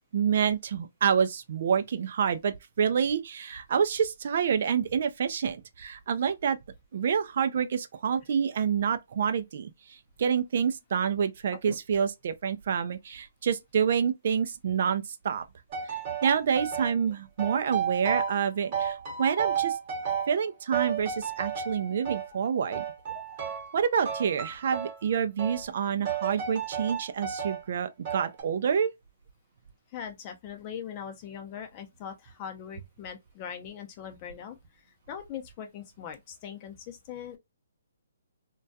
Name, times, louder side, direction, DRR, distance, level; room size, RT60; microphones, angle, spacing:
voice 1, 0.1-6.6 6.9-9.7 10.2-15.4 15.9-19.8 20.3-22.8 23.7-28.9, right 7 dB, 55° right, 0.3 m, -28 dB
sound 1, 15.7-17.0 17.4-18.5 18.7-20.4 20.7-22.3 22.7-23.8 24.0-25.0 25.4-25.6 26.0-27.6 28.0-28.4, right 8 dB, 35° right, 0.8 m, -32 dB
voice 2, 22.2-22.8 23.1-23.5 29.9-34.6 35.1-37.4, left 8 dB, 30° left, 0.5 m, -41 dB
2.2 x 2.2 x 2.6 m
hypercardioid pair, 150°, 0 cm